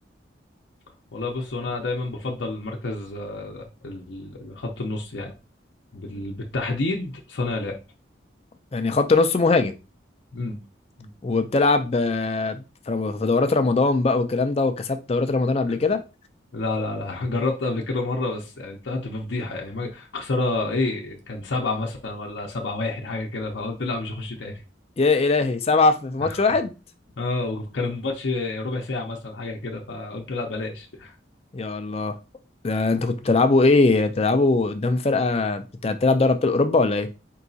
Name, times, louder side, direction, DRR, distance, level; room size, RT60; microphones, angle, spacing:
voice 1, 1.1-5.4 5.9-7.8 10.3-10.6 11.0-11.1 15.7-15.8 16.5-24.6 26.2-26.5 27.2-31.2, left 2 dB, 70° left, 0.7 m, -29 dB
voice 2, 8.7-9.7 11.2-16.0 25.0-26.7 31.5-32.1 32.6-37.1, left 3 dB, 30° left, 0.4 m, -21 dB
4.6 x 2.9 x 2.7 m
head